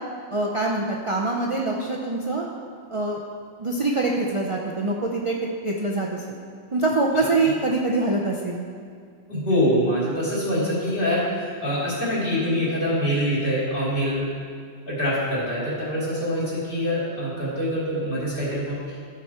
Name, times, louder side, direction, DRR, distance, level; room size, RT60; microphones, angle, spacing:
voice 1, 0.3-2.5 2.9-3.2 3.6-5.4 5.6-6.1 6.7-8.6, right 2 dB, 35° right, -2 dB, 0.6 m, -24 dB
voice 2, 9.3-14.3 14.9-18.8, equal, 50° left, -8 dB, 3.2 m, -24 dB
12.0 x 6.4 x 4.3 m, 2.1 s
omnidirectional pair, 1.2 m